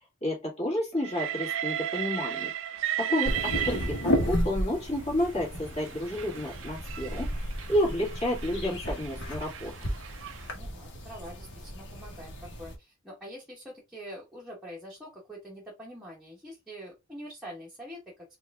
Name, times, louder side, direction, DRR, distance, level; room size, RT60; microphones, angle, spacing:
voice 1, 0.2-2.5 3.0-3.3 3.6-7.3 7.7-9.9, left 1 dB, 30° left, 2.0 m, -30 dB
Train, 1.0-4.4 5.2-10.5, right 11 dB, 60° right, 0.4 m, -35 dB
sound 1, 3.2-12.8, equal, 55° left, 1.2 m, -33 dB
voice 2, 10.5-12.3 12.6-18.0, equal, 5° right, 1.0 m, -45 dB
4.4 x 2.5 x 3.5 m
head